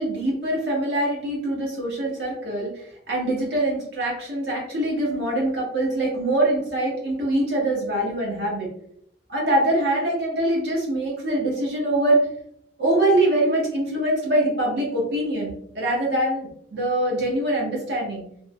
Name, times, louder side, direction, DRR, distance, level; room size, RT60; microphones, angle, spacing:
voice 1, 0.0-8.7 9.3-12.2 12.8-18.2, right 1 dB, 60° right, -4 dB, 1.2 m, -24 dB
3.5 x 2.1 x 2.3 m, 0.71 s
head